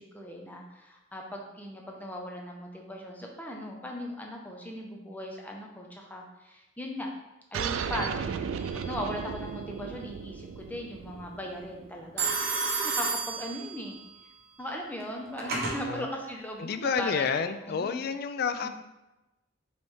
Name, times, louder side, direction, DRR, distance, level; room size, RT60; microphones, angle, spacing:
voice 1, 0.0-7.1 7.5-14.0 14.6-17.3 17.6-18.0 18.6-18.7, equal, 10° left, 0 dB, 0.6 m, -38 dB
sound 1, 7.5-12.6, right 6 dB, 85° right, 0.3 m, -35 dB
Telephone, 8.6-9.1 12.2-14.0 15.0-15.8, right 4 dB, 55° right, 1.0 m, -31 dB
voice 2, 16.6-18.7, left 6 dB, 50° left, 10 dB, 0.3 m, -29 dB
5.2 x 3.2 x 3.2 m, 1.0 s
head